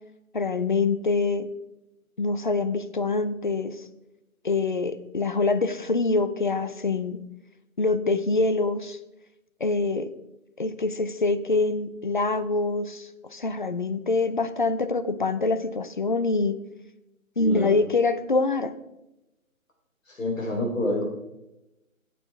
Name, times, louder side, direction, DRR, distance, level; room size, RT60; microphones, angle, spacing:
voice 1, 0.3-1.5 2.2-3.9 4.4-7.2 7.8-9.0 9.6-10.1 10.6-16.6 17.4-18.7, left 3 dB, 35° left, 11 dB, 0.6 m, -25 dB
voice 2, 17.4-17.9 20.1-21.0, left 1 dB, 65° left, 0 dB, 4.0 m, -28 dB
13.0 x 8.6 x 3.5 m, 0.92 s
figure-of-eight pair, 155°, 42 cm